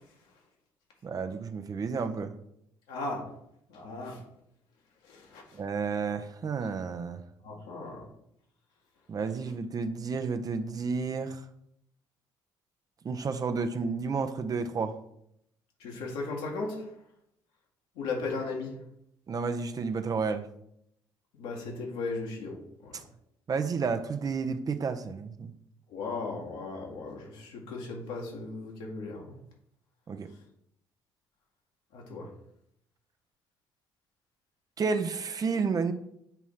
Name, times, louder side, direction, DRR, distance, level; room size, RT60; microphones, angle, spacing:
voice 1, 1.0-2.3 5.5-7.2 9.1-11.4 13.0-15.0 19.3-20.5 23.5-25.5 30.1-30.3 34.8-35.9, right 5 dB, 40° right, 0.8 m, -31 dB
voice 2, 2.9-3.2 3.7-4.2 5.0-5.6 7.4-8.1 15.8-16.8 18.0-18.8 21.4-23.0 25.9-29.3 31.9-32.3, left 3 dB, 80° left, 1.9 m, -36 dB
8.1 x 3.1 x 5.6 m
supercardioid pair, 65°, 9 cm